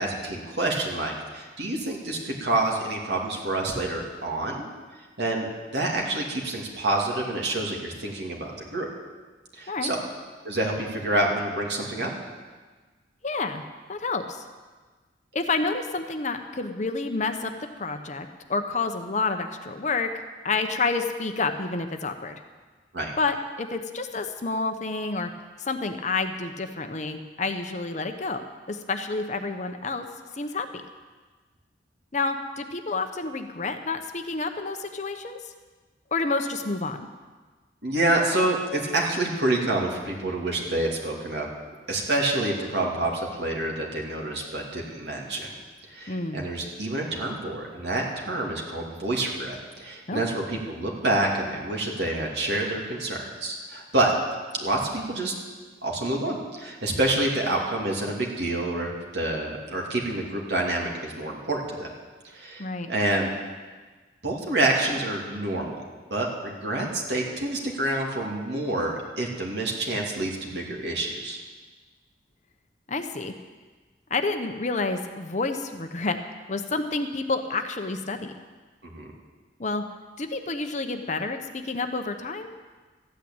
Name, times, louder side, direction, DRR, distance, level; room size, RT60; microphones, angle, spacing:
voice 1, 0.0-4.7 5.2-8.9 9.5-10.0 10.4-12.1 22.9-23.1 37.8-41.5 41.9-45.6 45.9-54.1 54.5-55.3 55.8-61.9 62.2-63.3 64.2-65.8 66.1-71.4 78.8-79.1, right 2 dB, 65° right, -1 dB, 2.7 m, -27 dB
voice 2, 13.2-13.6 13.9-14.4 15.3-17.5 17.8-20.1 20.4-22.4 23.2-25.3 25.6-28.4 28.7-30.1 30.3-30.7 32.1-35.4 36.1-37.0 46.1-46.4 50.1-50.3 62.6-62.9 72.9-73.3 74.1-76.2 76.5-78.3 79.6-79.8 80.2-82.5, left 3 dB, 40° left, 7 dB, 0.9 m, -29 dB
14.0 x 9.1 x 8.8 m, 1.4 s
head